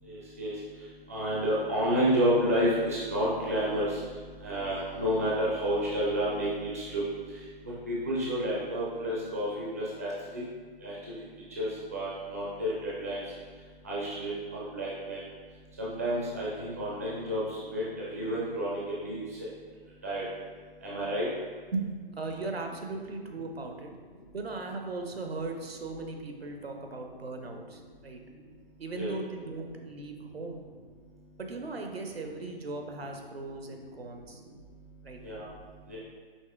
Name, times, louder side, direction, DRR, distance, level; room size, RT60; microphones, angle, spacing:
voice 1, 0.0-10.4 10.8-11.2 11.5-13.3 13.8-15.2 15.8-19.5 20.0-20.3 20.8-21.3 28.3-28.4 28.9-29.1 30.2-30.3 34.1-34.4 35.2-36.0, equal, 15° right, -7 dB, 0.4 m, -31 dB
voice 2, 22.2-23.9 24.3-28.2 28.8-30.6 31.4-34.4 35.0-35.2, right 3 dB, 80° right, 3 dB, 0.7 m, -38 dB
5.3 x 3.2 x 2.3 m, 1.5 s
figure-of-eight pair, 140°, 30 cm